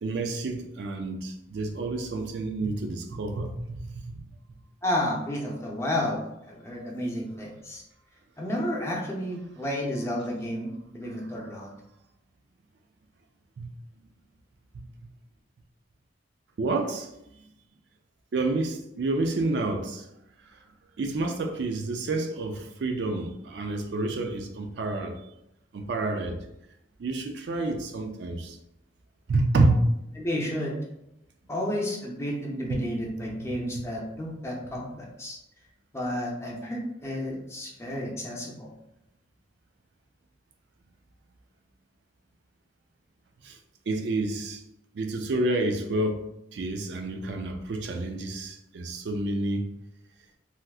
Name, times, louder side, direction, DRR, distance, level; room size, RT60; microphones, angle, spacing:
voice 1, 0.0-4.2 13.6-13.7 14.7-14.8 16.6-17.1 18.3-20.1 21.0-25.2 25.7-26.4 27.0-28.6 29.3-29.9 32.7-32.8 33.3-33.9 43.4-43.6 43.9-44.6 44.9-46.2 46.5-49.7, right 2 dB, 65° right, 0.4 m, -29 dB
voice 2, 4.8-6.2 6.5-7.8 8.4-11.7 30.2-30.8 31.5-35.4 35.9-38.7, left 1 dB, 15° left, 0.5 m, -31 dB
3.4 x 2.7 x 2.3 m
head